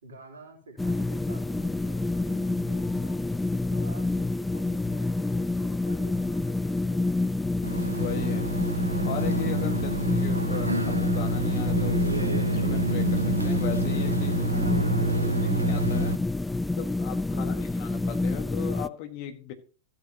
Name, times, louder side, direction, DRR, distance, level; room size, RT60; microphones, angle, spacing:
voice 1, 0.0-3.2 3.7-7.5 9.7-10.0 14.5-15.6 17.3-17.7, right 2 dB, 65° right, 0 dB, 3.3 m, -47 dB
sound 1, 0.8-18.9, left 2 dB, 5° left, 0.3 m, -28 dB
sound 2, 7.6-16.2, right 2 dB, 85° right, 0.7 m, -28 dB
voice 2, 8.0-8.6 9.0-9.9 10.2-14.4 15.7-16.2 16.7-19.5, left 10 dB, 45° left, 7 dB, 1.6 m, -37 dB
15.0 x 7.6 x 2.9 m, 0.38 s
figure-of-eight pair, 90°, 0 cm